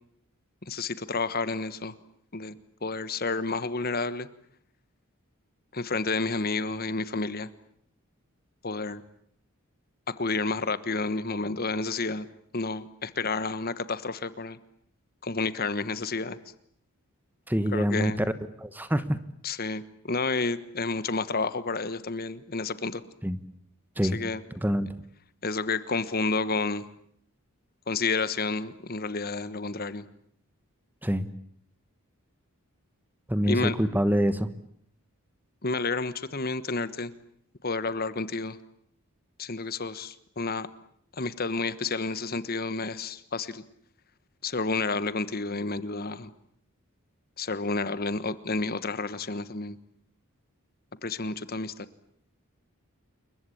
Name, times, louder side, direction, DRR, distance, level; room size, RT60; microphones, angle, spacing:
voice 1, 0.6-1.9 2.3-2.5 2.8-4.3 5.7-7.5 8.6-9.0 10.1-12.3 12.5-14.6 15.2-16.4 17.7-18.2 19.4-23.0 24.0-24.4 25.4-26.8 27.9-30.1 33.4-33.8 35.6-37.1 37.6-38.6 39.4-40.7 41.2-43.6 44.4-46.3 47.4-49.8 51.0-51.9, left 3 dB, 45° left, 14 dB, 1.3 m, -30 dB
voice 2, 17.5-18.3 18.6-19.2 23.2-23.4 24.0-24.2 24.5-24.9 31.0-31.3 33.3-34.5, equal, 10° right, 12 dB, 1.2 m, -25 dB
28.5 x 23.0 x 8.6 m, 0.67 s
head